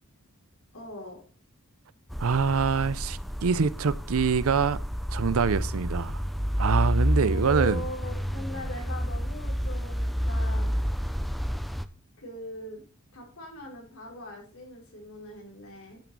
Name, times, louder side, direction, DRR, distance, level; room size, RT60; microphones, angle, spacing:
voice 1, 0.7-1.2 7.1-10.7 12.2-12.8 13.1-16.0, left 1 dB, 75° left, 4.1 m, -41 dB
sound 1, 2.1-11.9, equal, ahead, 0.4 m, -29 dB
voice 2, 2.2-4.8 5.1-6.2 6.6-7.8, right 5 dB, 75° right, 0.5 m, -25 dB
10.5 x 6.0 x 5.3 m
head